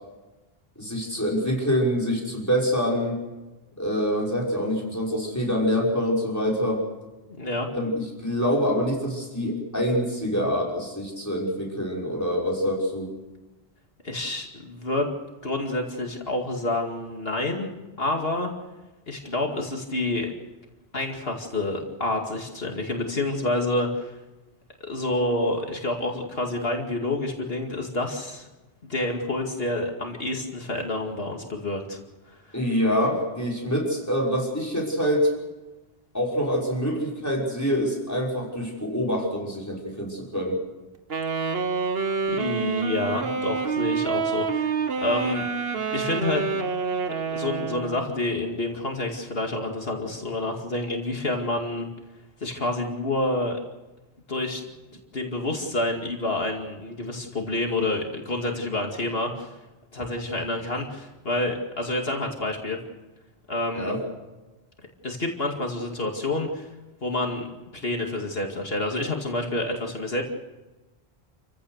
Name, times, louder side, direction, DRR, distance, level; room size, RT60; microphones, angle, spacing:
voice 1, 0.8-3.2 3.8-6.8 7.7-13.1 32.5-35.3 36.1-40.6 63.7-64.0, equal, 15° left, -3 dB, 5.9 m, -25 dB
voice 2, 7.3-7.7 14.0-15.1 15.4-17.7 18.0-18.5 19.1-20.3 20.9-24.2 24.8-28.5 28.9-32.0 32.5-32.6 42.3-45.5 45.9-46.5 47.3-51.9 52.4-53.6 54.3-54.6 55.1-59.5 59.9-62.8 63.5-63.9 65.0-66.7 67.0-70.2, left 2 dB, 65° left, 2 dB, 2.5 m, -28 dB
Wind instrument woodwind instrument, 41.1-48.1, right 5 dB, 70° right, 1.5 m, -27 dB
29.0 x 15.5 x 6.7 m, 1.1 s
omnidirectional pair, 1.1 m